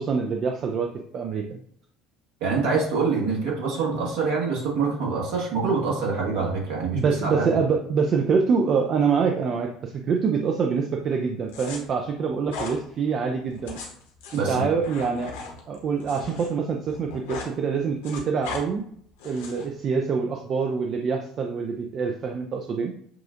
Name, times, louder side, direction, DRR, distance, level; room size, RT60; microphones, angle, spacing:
voice 1, 0.0-1.6 6.9-13.8 14.3-15.3 15.7-18.8 19.2-22.9, right 5 dB, 45° right, 3 dB, 0.4 m, -25 dB
voice 2, 2.4-7.6 14.3-14.7, right 4 dB, 65° right, -2 dB, 1.5 m, -25 dB
sound 1, 11.5-11.8 12.5-12.8 13.5-16.5 16.8-17.5 17.8-18.6 19.2-19.7, left 4 dB, 75° left, 1.1 m, -37 dB
7.3 x 2.5 x 2.5 m, 0.64 s
hypercardioid pair, 65°, 0 cm